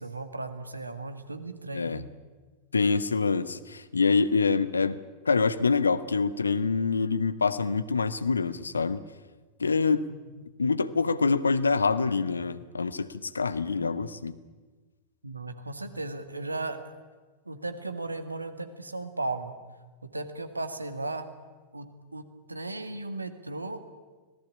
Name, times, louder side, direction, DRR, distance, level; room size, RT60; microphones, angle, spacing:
voice 1, 0.0-2.0 10.1-10.2 15.2-16.8 17.5-19.5 20.0-21.3 21.7-23.8, right 2 dB, 85° right, 10 dB, 1.9 m, -36 dB
voice 2, 2.7-5.0 5.2-9.0 9.6-10.1 10.6-14.3, left 4 dB, 75° left, 15 dB, 1.1 m, -25 dB
25.0 x 18.5 x 8.7 m, 1.3 s
figure-of-eight pair, 90°, 0 cm